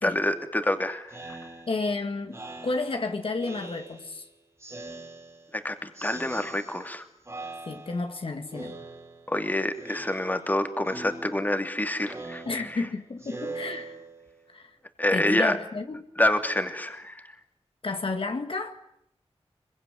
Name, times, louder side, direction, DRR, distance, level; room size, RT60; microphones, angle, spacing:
voice 1, 0.0-1.5 5.5-7.0 9.3-12.8 15.0-15.6 16.2-17.2, left 1 dB, 15° left, 2.6 m, -27 dB
Speech synthesizer, 1.1-4.2 4.6-5.6 6.0-7.0 7.3-8.2 8.5-9.4 9.8-10.6 10.9-14.4, right 2 dB, 25° right, 4.5 m, -42 dB
voice 2, 1.7-4.3 7.7-8.8 12.5-14.0 14.5-14.7 15.1-16.1 17.8-18.8, left 3 dB, 60° left, 2.0 m, -31 dB
25.5 x 23.5 x 9.9 m
wide cardioid pair, 105°, 11 cm